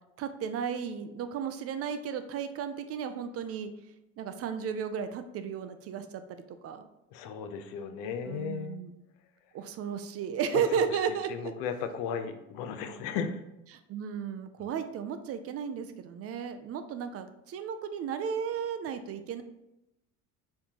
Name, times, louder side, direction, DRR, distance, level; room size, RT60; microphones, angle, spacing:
voice 1, 0.2-3.7 4.2-6.9 8.3-8.9 9.5-11.5 13.7-19.4, right 7 dB, 45° right, 9 dB, 0.4 m, -34 dB
voice 2, 7.1-8.8 10.5-10.6 11.3-13.4 14.6-14.7, left 7 dB, 70° left, 8 dB, 0.6 m, -35 dB
4.3 x 3.7 x 2.9 m, 0.88 s
supercardioid pair, 105°, 35 cm